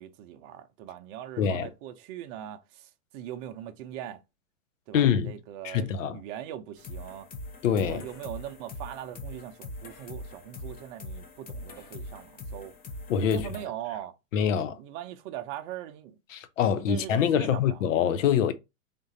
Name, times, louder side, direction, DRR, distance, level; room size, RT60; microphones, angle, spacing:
voice 1, 0.0-4.2 4.9-7.3 7.8-12.8 13.2-14.1 14.4-16.2 16.7-17.8, right 11 dB, 40° right, 0.6 m, -41 dB
voice 2, 1.4-1.7 4.9-5.3 5.6-6.2 7.6-8.0 13.1-13.5 14.3-14.8 16.3-18.5, left 8 dB, 65° left, 0.8 m, -25 dB
sound 1, 6.8-13.7, left 2 dB, 20° left, 0.8 m, -42 dB
3.7 x 2.5 x 4.0 m
hypercardioid pair, 110°, 42 cm